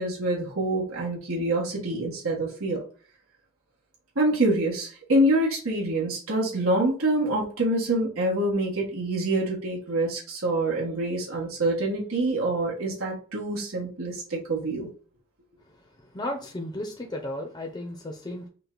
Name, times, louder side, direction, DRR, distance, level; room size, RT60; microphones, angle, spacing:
voice 1, 0.0-2.8 4.1-14.9, right 1 dB, 80° right, -4 dB, 1.5 m, -26 dB
voice 2, 16.1-18.5, left 1 dB, 20° left, 1 dB, 0.7 m, -34 dB
5.7 x 2.3 x 3.8 m, 0.39 s
head